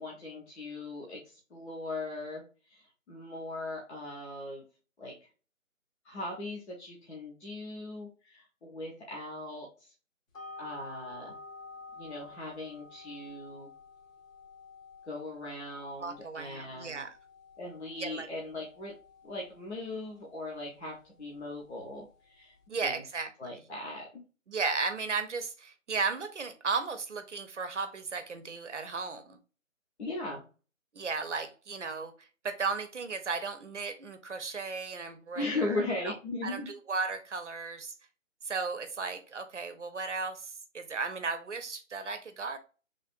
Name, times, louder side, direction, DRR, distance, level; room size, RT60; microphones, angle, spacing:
voice 1, 0.0-4.6 5.0-5.1 6.0-9.9 10.6-11.4 11.9-13.7 15.0-17.0 17.6-18.9 19.2-22.5 22.8-23.0 23.4-24.2 30.0-30.4 35.3-36.7, left 2 dB, 55° left, -1 dB, 0.9 m, -39 dB
sound 1, 10.3-22.7, left 3 dB, 75° left, 1.3 m, -51 dB
voice 2, 16.0-17.1 18.0-18.3 22.7-23.3 24.5-29.4 30.9-32.1 32.4-35.8 36.0-36.1 36.4-37.9 38.4-42.6, right 4 dB, 60° right, 8 dB, 0.6 m, -35 dB
3.3 x 2.4 x 2.5 m, 0.35 s
figure-of-eight pair, 150°, 40 cm